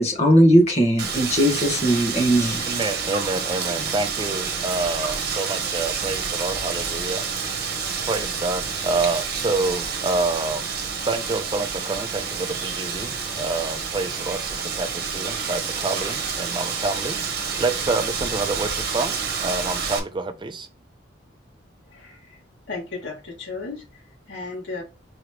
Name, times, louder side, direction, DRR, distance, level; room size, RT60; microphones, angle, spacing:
voice 1, 0.0-2.7, equal, 35° left, 1.4 m, -18 dB
Wind, 1.0-20.0, right 5 dB, 55° right, 1.0 m, -28 dB
voice 2, 2.6-7.3 8.1-10.7 11.0-20.7, right 3 dB, 25° right, 0.6 m, -28 dB
voice 3, 22.7-23.8 24.3-24.8, left 3 dB, 70° left, 2.5 m, -34 dB
4.8 x 3.1 x 3.3 m
head